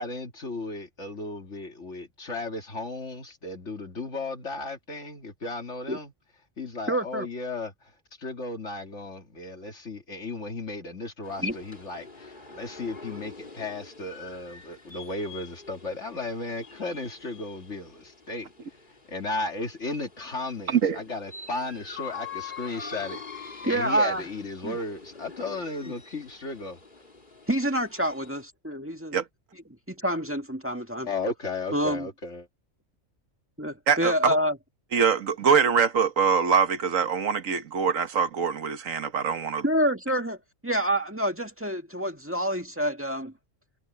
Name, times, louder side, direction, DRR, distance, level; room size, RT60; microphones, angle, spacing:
voice 1, 0.0-6.1 6.6-7.7 8.2-18.5 19.1-26.8 31.1-32.5, left 3 dB, 65° left, 2.8 m, -35 dB
voice 2, 6.9-7.3 11.4-11.6 23.7-24.3 24.6-24.8 25.9-26.0 27.5-29.2 29.9-31.1 31.7-32.1 33.6-34.6 39.6-40.4 40.6-43.3, right 1 dB, 10° right, 1.8 m, -27 dB
sound 1, 11.2-28.4, left 5 dB, 40° left, 2.9 m, -45 dB
voice 3, 20.7-21.0 29.1-29.3 33.9-34.4 34.9-39.6, right 6 dB, 90° right, 1.7 m, -23 dB
omnidirectional pair, 1.3 m